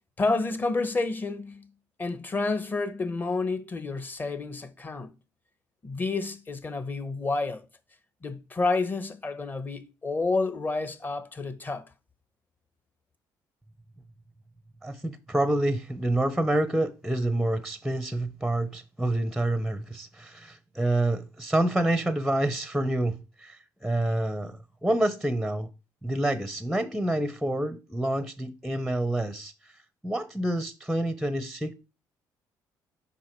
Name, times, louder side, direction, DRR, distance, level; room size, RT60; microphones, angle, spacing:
voice 1, 0.2-1.7 2.0-5.1 5.8-7.6 8.2-11.8, left 3 dB, 25° left, 0.9 m, -29 dB
voice 2, 14.8-25.7 26.0-29.7 30.0-31.7, right 1 dB, ahead, 0.6 m, -28 dB
5.4 x 4.7 x 4.5 m
cardioid pair, 105°, 8 cm